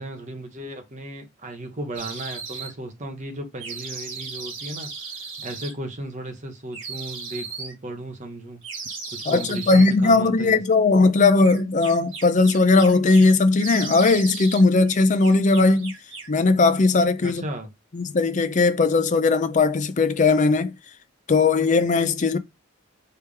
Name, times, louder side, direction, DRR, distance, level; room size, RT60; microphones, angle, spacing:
voice 1, 0.0-8.6 9.1-10.6 17.2-17.7, right 1 dB, 35° right, 1.1 m, -35 dB
sound 1, 2.0-2.7 3.6-5.7 6.7-7.7 8.6-10.0 11.4-13.3 13.6-14.6 14.9-16.4, right 5 dB, 70° right, 1.5 m, -36 dB
voice 2, 9.3-15.9 16.3-17.4 17.9-20.7 21.3-22.4, left 3 dB, 40° left, 0.5 m, -18 dB
4.4 x 3.3 x 3.4 m
head